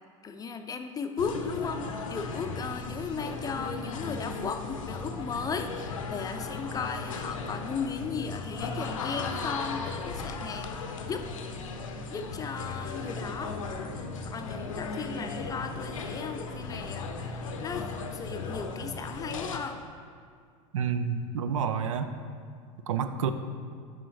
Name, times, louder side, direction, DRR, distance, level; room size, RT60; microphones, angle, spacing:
voice 1, 0.2-11.3 12.1-13.6 14.2-19.8, left 5 dB, 20° left, 7 dB, 0.5 m, -36 dB
sound 1, 1.2-19.6, left 4 dB, 80° left, 0.6 m, -36 dB
voice 2, 20.7-22.1 22.9-23.3, right 6 dB, 75° right, 10 dB, 0.4 m, -29 dB
6.1 x 5.0 x 4.6 m, 2.2 s
hypercardioid pair, 80°, 17 cm